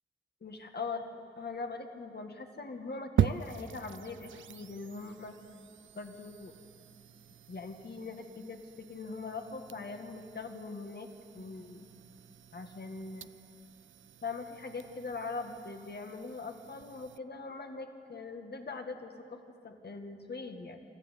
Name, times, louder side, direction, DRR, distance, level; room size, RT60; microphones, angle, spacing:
voice 1, 0.4-5.4 6.0-6.5 7.5-11.1 11.3-11.9 12.5-13.3 14.2-20.8, left 3 dB, 60° left, 4 dB, 1.9 m, -41 dB
sound 1, 3.2-17.2, right 10 dB, 85° right, 0.4 m, -40 dB
24.5 x 13.5 x 8.3 m, 2.4 s
wide cardioid pair, 70°, 19 cm